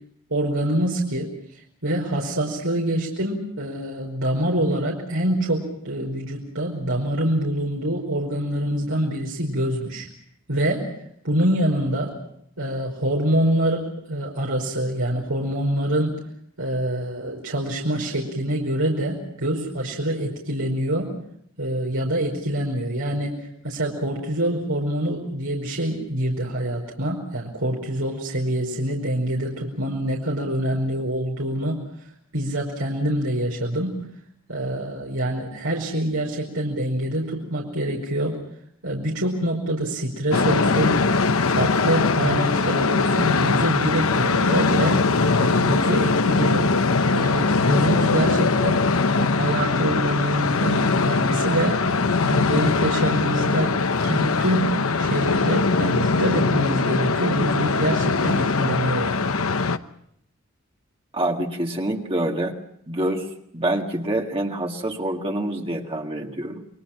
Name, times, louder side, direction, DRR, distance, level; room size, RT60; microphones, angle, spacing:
voice 1, 0.3-10.1 10.5-10.9 11.2-12.1 12.6-16.2 16.6-21.1 21.6-31.8 32.3-34.0 34.5-38.4 38.8-41.0 41.5-45.1 45.4-46.7 47.1-51.8 52.2-53.7 54.0-59.3, right 1 dB, 80° right, -2 dB, 5.1 m, -25 dB
sound 1, 40.3-59.8, left 4 dB, 80° left, 1.0 m, -21 dB
voice 2, 61.1-62.6 62.9-63.3 63.5-66.7, right 1 dB, 25° right, 1 dB, 2.0 m, -26 dB
29.5 x 23.0 x 5.9 m, 0.72 s
head